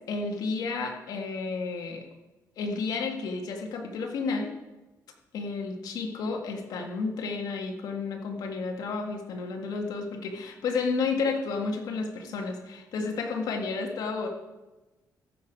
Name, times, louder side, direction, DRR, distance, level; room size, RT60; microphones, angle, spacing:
voice 1, 0.1-2.0 2.6-4.5 5.3-14.3, left 4 dB, 75° left, 3 dB, 1.8 m, -31 dB
14.0 x 6.3 x 5.2 m, 1.1 s
cardioid pair, 115°, 7 cm